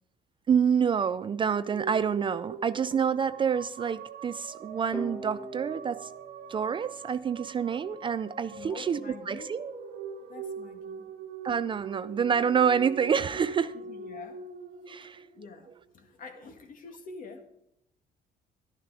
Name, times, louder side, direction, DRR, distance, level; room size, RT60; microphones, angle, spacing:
voice 1, 0.5-6.1 6.5-9.7 11.4-13.8 14.9-15.2, right 7 dB, 30° right, 0.3 m, -27 dB
sound 1, 1.3-15.8, right 6 dB, 65° right, 1.2 m, -42 dB
sound 2, 4.9-7.7, left 1 dB, 10° left, 0.7 m, -43 dB
voice 2, 8.5-9.5 10.2-11.1 13.7-14.4 15.0-17.4, left 4 dB, 55° left, 1.9 m, -46 dB
12.0 x 11.0 x 4.8 m
cardioid pair, 110°, 17 cm